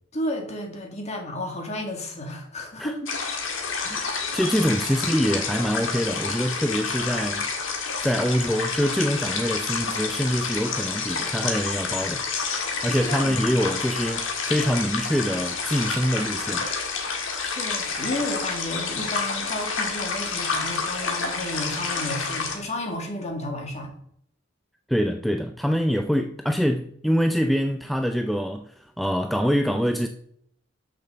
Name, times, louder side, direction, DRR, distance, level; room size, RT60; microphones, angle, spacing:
voice 1, 0.1-3.1 3.7-4.0 12.8-13.4 17.4-23.9, left 1 dB, 35° left, 1.8 m, -32 dB
sound 1, 3.1-22.6, left 4 dB, 75° left, 1.7 m, -29 dB
voice 2, 3.8-7.5 8.0-12.2 12.8-16.7 24.9-30.1, equal, ahead, 0.3 m, -25 dB
6.4 x 6.0 x 6.6 m
head